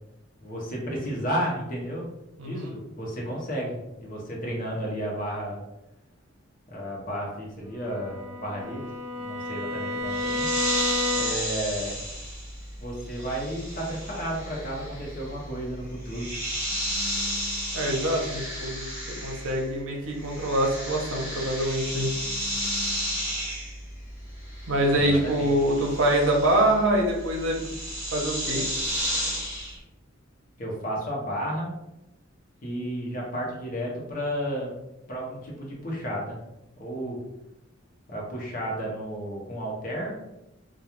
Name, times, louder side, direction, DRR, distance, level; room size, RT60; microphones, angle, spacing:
voice 1, 0.4-2.1 2.4-5.6 6.7-8.9 9.2-10.5 11.1-12.0 12.8-16.3 24.9-25.5 30.6-31.7 32.6-34.7 35.1-36.4 36.8-37.2 38.1-40.2, equal, 45° left, -3 dB, 0.7 m, -32 dB
voice 2, 2.4-2.7 17.7-18.9 19.2-22.1 24.7-27.6 28.1-28.7, right 1 dB, 80° right, 0 dB, 0.6 m, -24 dB
Bowed string instrument, 7.8-11.7, left 2 dB, 30° right, 0.5 m, -31 dB
sound 1, 10.1-19.8 20.0-29.8, equal, 10° right, 0.9 m, -33 dB
2.3 x 2.3 x 2.9 m, 0.92 s
head